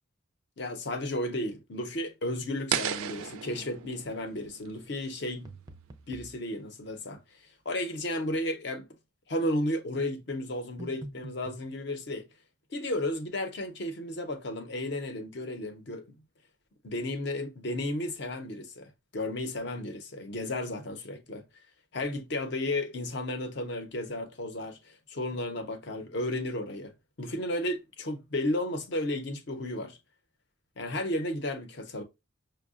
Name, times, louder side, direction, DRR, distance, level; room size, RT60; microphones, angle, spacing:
voice 1, 0.6-5.5 6.1-7.2 7.7-8.9 9.3-12.3 12.7-16.2 16.8-21.4 21.9-26.9 27.2-30.0 30.8-32.0, left 1 dB, 55° left, 0.7 m, -33 dB
sound 1, 2.7-5.7, right 8 dB, 90° right, 0.4 m, -35 dB
sound 2, 5.5-6.4 10.8-11.7, right 2 dB, 20° right, 0.4 m, -44 dB
5.4 x 2.1 x 2.4 m
head